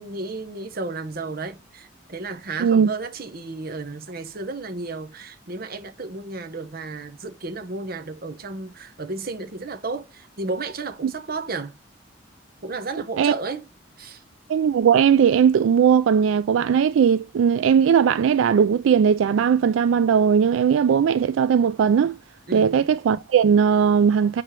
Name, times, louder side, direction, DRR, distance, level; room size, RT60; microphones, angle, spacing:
voice 1, 0.0-11.7 12.6-13.6 14.0-14.2 22.5-22.7, right 3 dB, 50° right, 1.0 m, -33 dB
voice 2, 14.5-22.2 22.5-24.4, right 7 dB, 80° right, 0.3 m, -18 dB
5.0 x 4.3 x 5.9 m
head